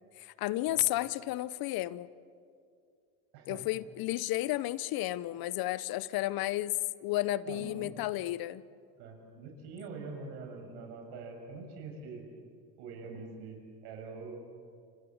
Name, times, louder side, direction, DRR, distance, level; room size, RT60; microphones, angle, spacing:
voice 1, 0.2-2.1 3.5-6.8 7.0-8.6, left 16 dB, 60° left, 18 dB, 1.0 m, -32 dB
voice 2, 7.5-7.9 9.0-12.3 12.8-14.5, right 4 dB, 70° right, 3 dB, 7.0 m, -44 dB
29.5 x 27.0 x 7.3 m, 2.3 s
supercardioid pair, 100°, 42 cm